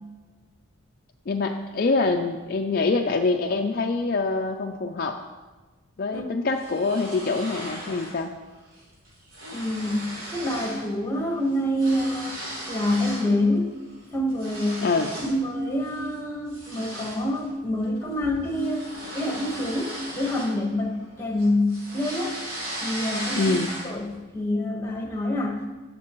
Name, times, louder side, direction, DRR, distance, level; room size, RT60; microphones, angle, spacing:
voice 1, 1.3-5.2 6.0-8.3 14.8-15.1 23.4-23.7, left 3 dB, 45° left, 4 dB, 0.4 m, -25 dB
sound 1, 6.6-8.2 8.5-8.8 9.1-10.9 11.2-13.3 13.8-15.4 15.8-16.1 16.5-21.1 21.4-24.1, right 1 dB, 85° right, 3.5 m, -37 dB
voice 2, 9.5-12.3 12.7-13.8 14.1-14.9 15.2-18.9 19.1-22.4 22.8-23.6 23.8-25.6, left 1 dB, 10° left, 2 dB, 1.3 m, -26 dB
16.5 x 6.6 x 3.0 m, 1.3 s
head